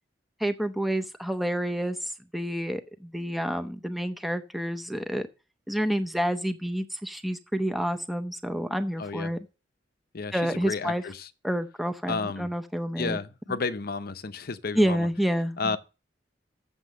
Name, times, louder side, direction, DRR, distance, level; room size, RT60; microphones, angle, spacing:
voice 1, 0.4-5.3 5.7-9.4 10.3-11.0 11.4-13.2 14.7-15.8, equal, ahead, 0.6 m, -29 dB
voice 2, 9.0-9.3 10.1-11.3 12.1-12.5 13.0-15.1 15.6-15.8, left 4 dB, 55° left, 0.7 m, -32 dB
7.6 x 7.2 x 6.5 m
head